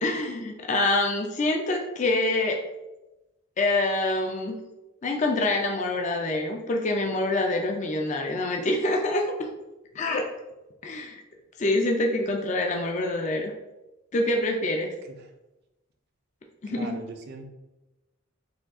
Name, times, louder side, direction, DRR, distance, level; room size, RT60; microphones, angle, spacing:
voice 1, 0.0-2.6 3.6-4.6 5.0-9.2 9.9-10.2 10.8-11.2 11.6-13.5 14.1-14.9 16.6-17.0, left 2 dB, 35° left, 2 dB, 0.4 m, -26 dB
voice 2, 16.7-17.4, right 3 dB, 50° right, 5 dB, 0.5 m, -40 dB
5.0 x 2.3 x 3.6 m, 1.0 s
head